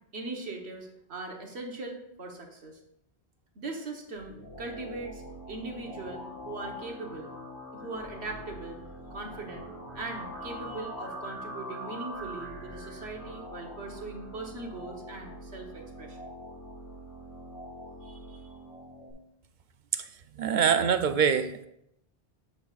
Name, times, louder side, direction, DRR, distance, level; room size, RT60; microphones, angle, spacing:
voice 1, 0.1-2.8 3.5-7.3 7.7-8.8 9.1-16.2 18.0-18.8, right 2 dB, 80° right, 1 dB, 1.5 m, -40 dB
sound 1, 4.1-19.1, equal, 20° left, 3.5 m, -43 dB
voice 2, 20.4-21.7, right 7 dB, 55° right, 10 dB, 0.6 m, -24 dB
10.5 x 7.1 x 2.4 m, 0.79 s
omnidirectional pair, 1.1 m